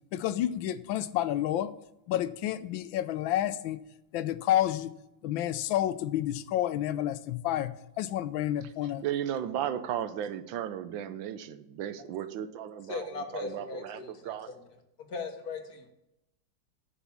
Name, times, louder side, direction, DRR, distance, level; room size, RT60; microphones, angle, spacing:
voice 1, 0.1-1.7 2.1-3.8 4.1-4.9 5.2-9.0, left 12 dB, 85° left, 14 dB, 1.4 m, -30 dB
voice 2, 8.8-14.5, right 10 dB, 85° right, 12 dB, 1.5 m, -35 dB
voice 3, 12.9-14.6 15.0-15.9, left 4 dB, 55° left, 5 dB, 1.7 m, -38 dB
10.0 x 5.8 x 7.1 m, 0.86 s
omnidirectional pair, 2.1 m